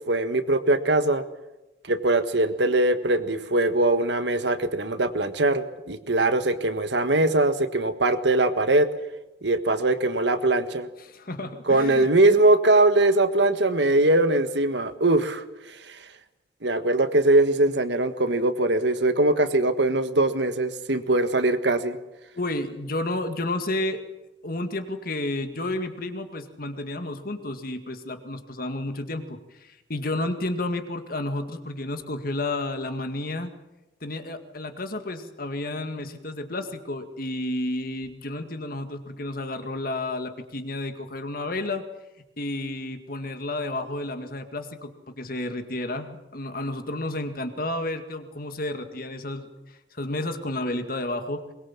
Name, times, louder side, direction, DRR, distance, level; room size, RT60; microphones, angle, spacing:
voice 1, 0.1-1.2 1.9-8.9 9.4-10.9 11.7-15.4 15.7-16.0 16.6-22.0, right 2 dB, 70° right, 10 dB, 1.6 m, -21 dB
voice 2, 11.0-12.1 22.4-24.1 24.4-33.5 34.0-41.8 42.4-49.5 49.9-51.5, left 2 dB, 50° left, 7 dB, 2.0 m, -31 dB
22.5 x 21.5 x 7.4 m, 1.0 s
head